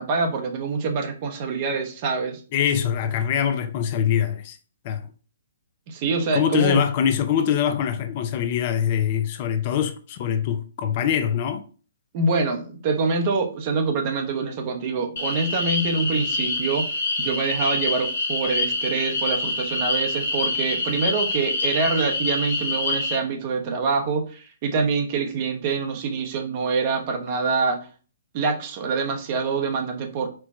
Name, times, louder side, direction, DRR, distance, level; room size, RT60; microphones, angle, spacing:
voice 1, 0.0-2.4 5.9-6.9 12.1-16.9 17.2-27.9 28.3-30.3, right 4 dB, 40° right, 0.9 m, -25 dB
voice 2, 2.5-4.6 4.8-5.1 6.3-11.6, left 9 dB, 40° left, 0.5 m, -23 dB
sound 1, 15.2-23.2, left 2 dB, 65° left, 1.2 m, -26 dB
4.5 x 2.3 x 4.2 m
figure-of-eight pair, 125°, 0 cm